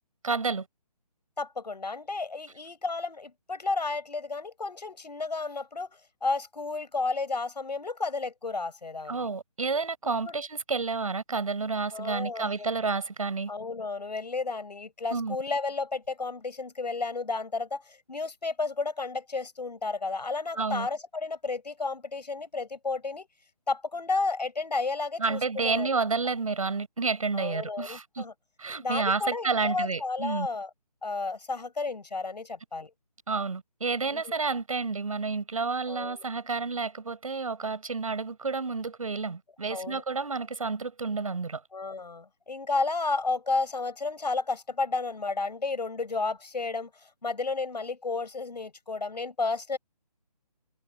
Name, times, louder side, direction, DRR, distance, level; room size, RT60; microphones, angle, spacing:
voice 1, 0.2-0.7 9.1-13.5 15.1-15.4 20.6-20.9 25.2-28.2 28.6-30.5 33.3-41.6, right 4 dB, 55° right, 7.3 m, -30 dB
voice 2, 1.4-9.3 10.3-10.4 11.9-12.7 13.5-23.3 23.7-25.9 27.3-28.3 28.8-30.7 31.0-32.9 34.1-34.4 35.9-36.3 39.7-40.0 41.7-46.9 47.2-49.8, left 3 dB, 80° left, 7.0 m, -32 dB
hypercardioid pair, 180°, 21 cm